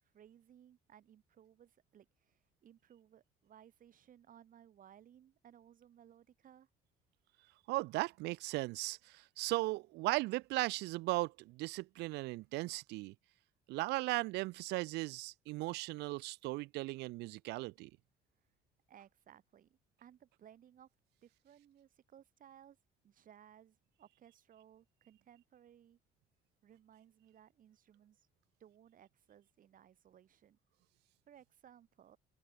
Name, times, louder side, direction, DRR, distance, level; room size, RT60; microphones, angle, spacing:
voice 1, 0.0-6.7 18.9-20.9 21.2-22.8 23.0-26.0 26.6-28.3 28.6-30.6 31.3-32.2, right 10 dB, 55° right, 4.7 m, -61 dB
voice 2, 7.7-13.1 13.7-17.9, right 21 dB, 90° right, 0.6 m, -37 dB
open air
cardioid pair, 110°, 17 cm